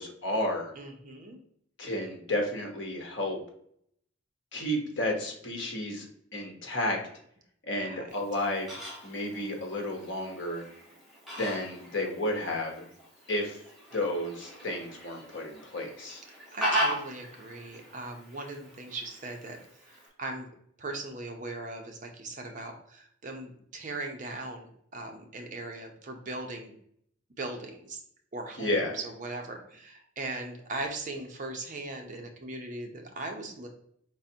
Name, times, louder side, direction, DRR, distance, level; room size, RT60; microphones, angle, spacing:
voice 1, 0.0-0.7 1.8-3.4 4.5-7.0 7.6-8.7 9.0-10.7 11.4-12.9 13.3-13.6 13.9-16.2 28.6-29.0, left 1 dB, 65° left, 2 dB, 1.2 m, -32 dB
voice 2, 0.8-1.4 7.8-8.2 16.5-19.6 19.9-20.5 20.8-26.7 27.4-28.0 28.3-33.7, right 2 dB, 40° right, 3 dB, 0.8 m, -39 dB
Fowl, 8.1-20.1, equal, ahead, 1.3 m, -38 dB
4.9 x 3.9 x 2.8 m, 0.67 s
head